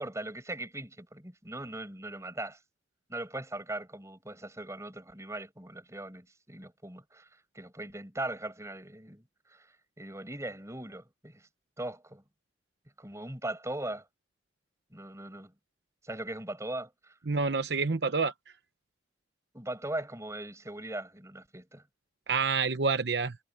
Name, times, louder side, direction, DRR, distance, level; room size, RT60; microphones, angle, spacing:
voice 1, 0.0-2.6 3.1-11.5 11.8-12.2 13.0-14.0 14.9-15.5 16.0-17.1 19.5-21.8, right 1 dB, 15° right, 6.1 m, -40 dB
voice 2, 17.3-18.3 22.3-23.4, right 4 dB, 65° right, 0.8 m, -28 dB
head